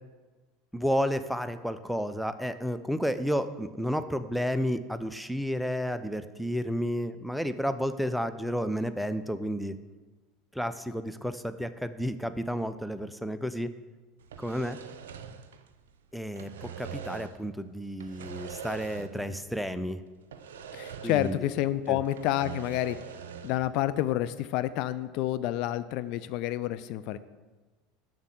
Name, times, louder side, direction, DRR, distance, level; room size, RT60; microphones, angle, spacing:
voice 1, 0.7-9.8 10.5-13.7 14.4-14.8 16.1-20.0 21.0-21.3 21.9-22.0, equal, ahead, 10 dB, 0.5 m, -31 dB
sound 1, 14.2-16.0 16.2-17.5 18.0-19.4 19.6-19.7 20.3-21.6 21.9-23.7, right 7 dB, 70° right, 0.6 m, -43 dB
voice 2, 20.7-23.0 23.4-27.2, left 13 dB, 55° left, 14 dB, 0.4 m, -29 dB
7.1 x 6.5 x 7.3 m, 1.3 s
figure-of-eight pair, 75°, 0 cm